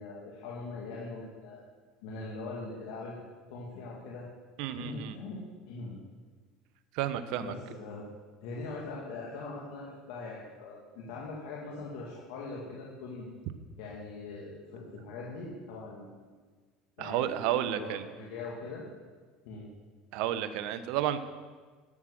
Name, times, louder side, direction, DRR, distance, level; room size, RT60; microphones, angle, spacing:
voice 1, 0.0-1.6 2.0-3.1 3.5-4.3 4.8-6.0 7.4-8.0 8.4-13.3 13.8-16.1 17.0-17.3 17.7-18.8 19.4-19.7, left 3 dB, 75° left, -4 dB, 2.1 m, -41 dB
voice 2, 4.6-5.2 6.9-7.5 17.0-18.1 20.1-21.2, right 11 dB, 70° right, 12 dB, 0.8 m, -31 dB
11.0 x 7.5 x 6.4 m, 1.5 s
supercardioid pair, 95°, 0 cm